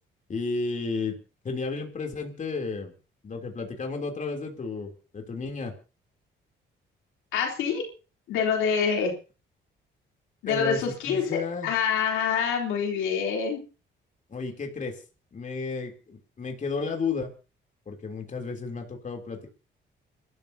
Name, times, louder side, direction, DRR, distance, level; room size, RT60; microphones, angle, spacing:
voice 1, 0.3-1.2 1.4-2.9 3.2-5.7 10.4-11.7 14.3-15.0 15.3-17.3 17.9-19.5, left 4 dB, 40° left, 2 dB, 3.3 m, -32 dB
voice 2, 7.3-7.8 8.3-9.1 10.4-13.6, left 6 dB, 90° left, 1 dB, 3.5 m, -26 dB
27.0 x 13.0 x 2.8 m, 0.34 s
cardioid pair, 90°, 20 cm